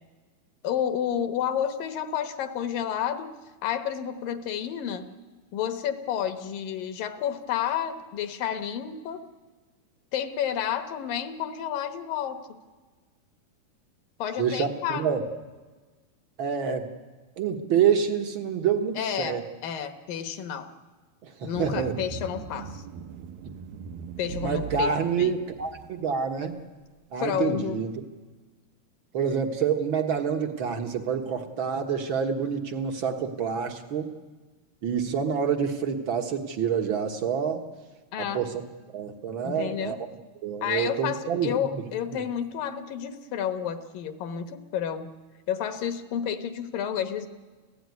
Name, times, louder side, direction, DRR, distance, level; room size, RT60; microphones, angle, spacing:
voice 1, 0.6-3.3 3.6-5.1 5.5-9.2 10.1-12.6 14.2-15.1 19.0-20.7 21.4-22.8 24.2-24.9 25.2-25.4 27.2-27.8 38.1-38.4 39.4-40.0 40.6-45.1 45.5-47.3, left 9 dB, 70° left, 9 dB, 2.8 m, -30 dB
voice 2, 14.4-15.2 16.4-16.9 17.4-19.4 21.2-21.9 24.4-26.6 27.1-28.0 29.1-34.1 34.8-37.6 38.2-38.5 38.9-40.0 40.4-41.8 42.1-42.3, right 7 dB, 55° right, 4 dB, 1.4 m, -27 dB
sound 1, 21.5-26.1, right 6 dB, 75° right, 2.4 m, -39 dB
29.5 x 16.0 x 9.6 m, 1.3 s
omnidirectional pair, 4.4 m